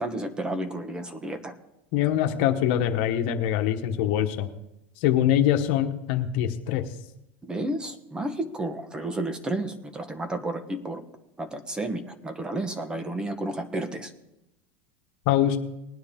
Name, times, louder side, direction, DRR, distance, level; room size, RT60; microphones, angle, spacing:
voice 1, 0.0-1.6 7.4-11.0 11.4-14.1, right 1 dB, 15° right, 9 dB, 1.2 m, -31 dB
voice 2, 1.9-4.5 5.0-6.8 15.3-15.6, left 11 dB, 65° left, 6 dB, 1.3 m, -23 dB
19.5 x 9.7 x 3.6 m, 0.89 s
supercardioid pair, 130°, 6 cm